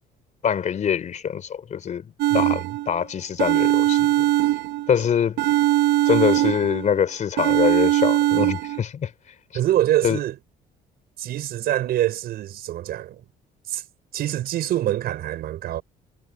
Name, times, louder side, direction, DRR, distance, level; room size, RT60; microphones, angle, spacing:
voice 1, 0.4-4.3 4.9-5.4 6.1-9.1 10.0-10.2, left 8 dB, 45° left, 3.6 m, -24 dB
sound 1, 2.2-3.0 3.4-5.0 5.4-6.9 7.4-8.8, right 15 dB, 90° right, 1.1 m, -21 dB
voice 2, 2.3-2.7 9.5-10.4 11.2-13.2 13.7-13.8 14.1-15.8, right 13 dB, 70° right, 5.4 m, -25 dB
cardioid pair, 110°, 17 cm